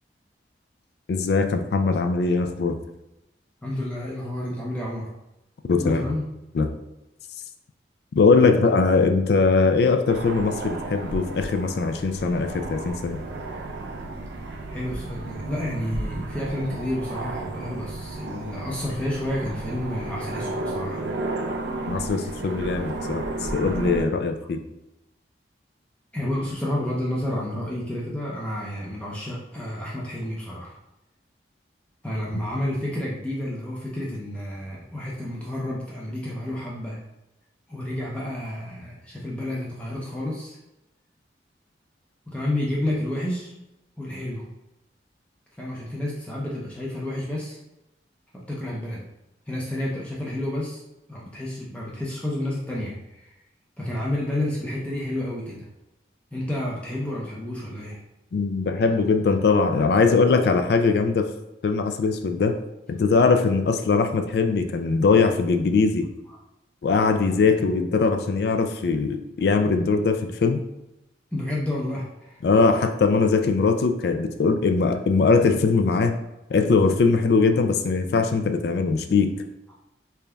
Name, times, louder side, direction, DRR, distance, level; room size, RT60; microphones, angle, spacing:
voice 1, 1.1-2.8 5.7-6.0 6.5-6.7 8.1-13.2 21.9-23.3 23.5-24.6 58.3-61.3 61.6-62.6 62.9-66.1 66.8-70.6 72.4-76.2 76.5-79.3, left 4 dB, 60° left, 7 dB, 0.3 m, -21 dB
voice 2, 3.6-5.1 5.8-6.2 14.7-21.0 26.1-30.8 32.0-37.0 37.7-40.6 42.3-43.5 44.0-44.4 45.6-47.6 48.3-49.1 49.5-50.8 51.1-53.3 53.8-55.7 56.3-58.0 71.3-72.4, left 1 dB, 5° left, -5 dB, 0.5 m, -30 dB
sound 1, 10.1-24.1, right 2 dB, 75° right, 0.5 m, -33 dB
3.9 x 3.4 x 2.2 m, 0.92 s
head